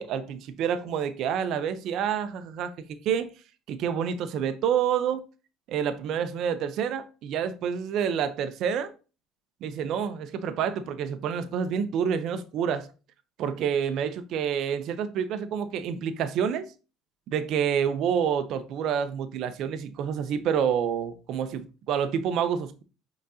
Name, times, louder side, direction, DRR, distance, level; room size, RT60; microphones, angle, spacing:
voice 1, 0.0-3.3 3.7-5.2 5.7-8.9 9.6-12.9 13.4-16.6 17.3-22.8, right 8 dB, 60° right, 0.5 m, -28 dB
5.2 x 3.9 x 2.7 m
supercardioid pair, 95°, 0 cm